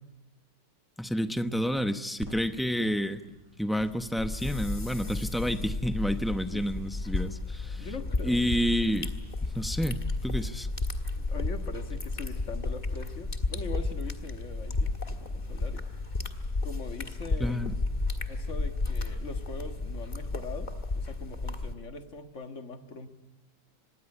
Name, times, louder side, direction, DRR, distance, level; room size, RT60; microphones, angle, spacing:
voice 1, 1.0-3.2 3.6-7.9 8.2-9.1 9.4-10.7 17.4-17.7, equal, ahead, 9 dB, 0.3 m, -29 dB
sound 1, 2.2-19.8, equal, 30° right, 5.5 m, -51 dB
sound 2, 4.2-21.7, left 3 dB, 25° left, 1.6 m, -33 dB
voice 2, 6.5-6.9 7.8-8.5 11.2-15.9 16.6-17.6 18.3-23.1, left 3 dB, 45° left, 7 dB, 1.9 m, -42 dB
25.5 x 20.5 x 9.8 m, 1.0 s
omnidirectional pair, 1.8 m